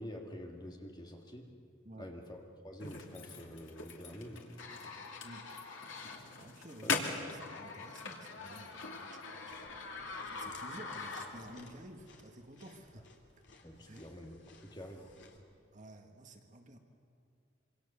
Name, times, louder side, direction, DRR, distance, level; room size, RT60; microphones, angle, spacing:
voice 1, 0.0-1.5 2.0-2.4 2.6-4.6 6.8-6.9 13.6-15.1, equal, 20° left, 1 dB, 2.1 m, -47 dB
sound 1, 2.8-11.6, left 4 dB, 85° left, 2.7 m, -42 dB
voice 2, 6.4-9.7 10.2-13.1 13.9-14.1 15.7-16.8, right 1 dB, 40° right, 4 dB, 1.8 m, -52 dB
Chewing mastication, 9.5-15.4, left 3 dB, 65° left, 2.8 m, -59 dB
26.0 x 25.5 x 6.9 m, 2.3 s
head